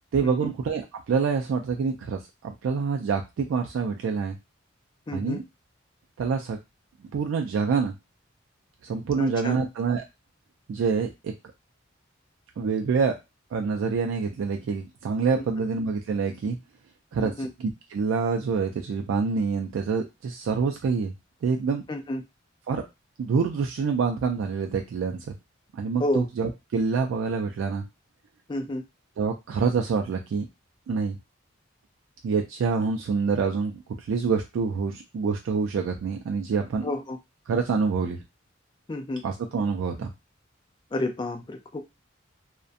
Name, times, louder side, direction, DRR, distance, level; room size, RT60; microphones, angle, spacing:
voice 1, 0.1-4.4 5.1-5.4 6.2-6.6 7.1-7.9 8.8-10.0 10.7-11.3 12.6-13.2 13.5-16.6 17.1-21.1 21.4-21.8 22.7-22.8 23.2-25.3 25.7-27.8 29.2-30.5 30.9-31.2 32.2-36.9 37.5-38.2 39.2-40.1, right 5 dB, 80° right, 3 dB, 0.3 m, -26 dB
voice 2, 5.1-5.4 9.1-9.6 15.3-15.4 17.2-17.5 21.9-22.2 26.0-26.2 28.5-28.8 36.8-37.2 38.9-39.2 40.9-41.8, left 2 dB, 25° left, 6 dB, 0.3 m, -30 dB
2.5 x 2.1 x 2.4 m, 0.23 s
head